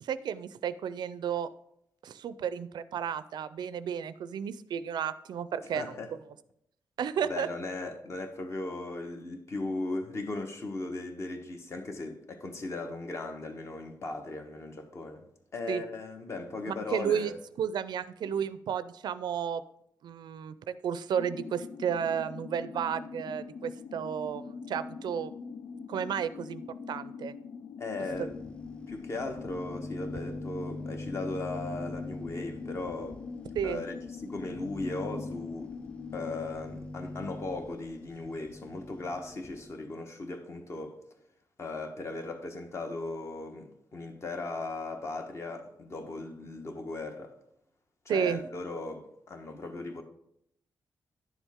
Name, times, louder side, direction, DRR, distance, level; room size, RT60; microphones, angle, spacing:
voice 1, 0.0-1.5 2.0-6.0 7.0-7.5 15.7-15.8 16.7-17.3 17.6-19.6 20.0-25.3 25.9-27.4 33.6-33.8 48.1-48.4, right 8 dB, 75° right, 0.4 m, -32 dB
voice 2, 5.6-6.1 7.2-15.2 15.5-17.4 18.2-18.4 27.8-28.3 28.9-33.2 33.6-35.7 36.1-41.0 41.6-47.3 48.0-50.0, left 2 dB, 40° left, 1.2 m, -37 dB
sound 1, 21.2-36.5, left 5 dB, 85° left, 0.6 m, -43 dB
sound 2, 28.1-39.7, left 1 dB, 15° left, 0.6 m, -43 dB
10.5 x 7.1 x 3.6 m
wide cardioid pair, 125°, 7 cm